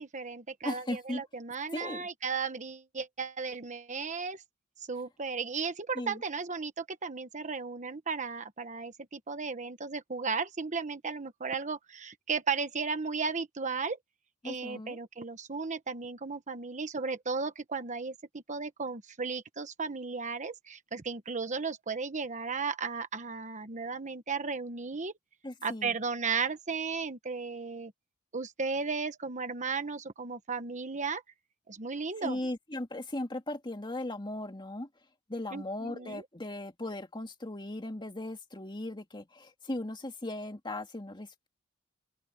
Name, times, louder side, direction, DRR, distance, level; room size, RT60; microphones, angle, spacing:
voice 1, 0.0-4.4 4.9-14.0 14.4-25.1 25.6-27.9 28.3-31.2 31.7-32.4 35.5-36.2, right 5 dB, 35° right, 1.2 m, -35 dB
voice 2, 0.6-1.2 1.7-2.1 5.9-6.2 14.4-15.0 25.4-25.9 32.2-34.9 35.3-41.5, left 1 dB, 25° left, 2.3 m, -37 dB
open air
head